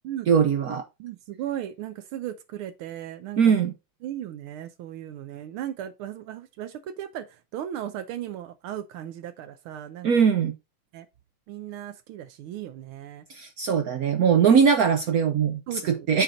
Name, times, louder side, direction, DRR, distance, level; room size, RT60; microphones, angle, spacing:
voice 1, 0.3-0.8 3.4-3.7 10.0-10.5 13.3-15.6 15.9-16.2, right 7 dB, 65° right, 0.9 m, -20 dB
voice 2, 1.0-3.5 4.0-10.1 10.9-11.1 11.5-13.2 15.7-16.1, right 11 dB, 80° right, 1.5 m, -36 dB
9.1 x 4.3 x 3.9 m
omnidirectional pair, 2.4 m